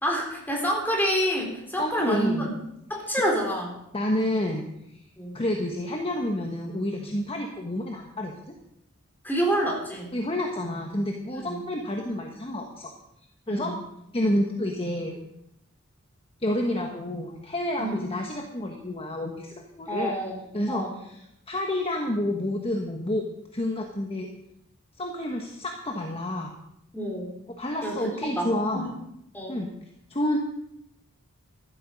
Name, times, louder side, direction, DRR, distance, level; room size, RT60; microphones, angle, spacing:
voice 1, 0.0-2.5 2.9-3.8 5.2-5.4 9.2-10.1 11.3-11.6 13.5-13.8 17.8-18.0 19.9-20.9 26.9-27.3 27.8-28.9 29.3-29.6, equal, 10° left, -1 dB, 4.0 m, -28 dB
voice 2, 1.8-2.5 3.9-5.0 5.3-8.5 10.1-12.9 13.5-13.7 14.1-15.2 16.4-20.2 20.5-23.2 23.5-24.3 25.0-26.5 27.6-28.9 29.5-29.7 30.1-30.4, left 1 dB, 30° left, 2 dB, 1.3 m, -29 dB
14.5 x 12.5 x 5.3 m, 0.81 s
head